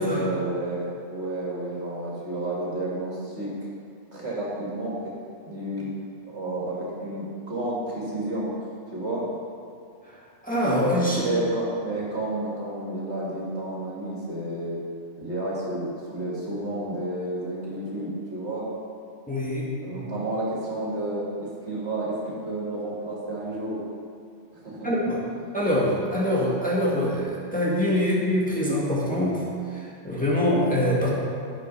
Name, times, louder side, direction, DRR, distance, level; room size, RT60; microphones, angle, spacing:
voice 1, 0.0-3.5 4.1-5.1 5.4-5.9 6.2-8.5 8.9-9.3 11.2-14.8 15.2-18.7 19.8-23.8 24.5-25.0, right 1 dB, 65° right, -6 dB, 2.8 m, -31 dB
voice 2, 10.4-11.3 19.3-20.0 24.8-25.2 25.5-31.1, equal, 5° left, -6 dB, 1.9 m, -24 dB
10.5 x 7.7 x 5.6 m, 2.4 s
omnidirectional pair, 1.2 m